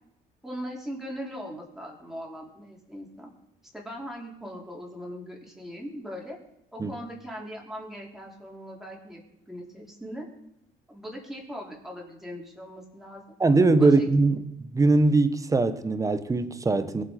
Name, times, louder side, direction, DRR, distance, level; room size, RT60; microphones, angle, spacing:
voice 1, 0.4-3.3 3.7-6.4 6.7-9.2 9.5-10.3 10.9-13.2 13.8-14.1, equal, ahead, 5.4 m, -39 dB
voice 2, 13.4-14.4 14.7-17.0, right 3 dB, 20° right, 1.3 m, -21 dB
23.0 x 8.0 x 6.0 m
cardioid pair, 110°, 17 cm